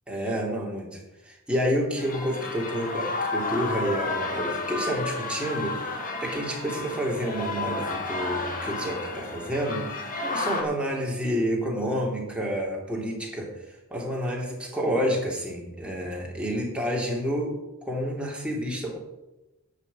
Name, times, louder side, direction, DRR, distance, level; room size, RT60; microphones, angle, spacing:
voice 1, 0.1-13.6 13.9-19.0, equal, 5° right, -2 dB, 3.0 m, -29 dB
sound 1, 2.0-10.6, left 3 dB, 40° left, 2.1 m, -32 dB
11.0 x 6.1 x 8.8 m, 0.98 s
head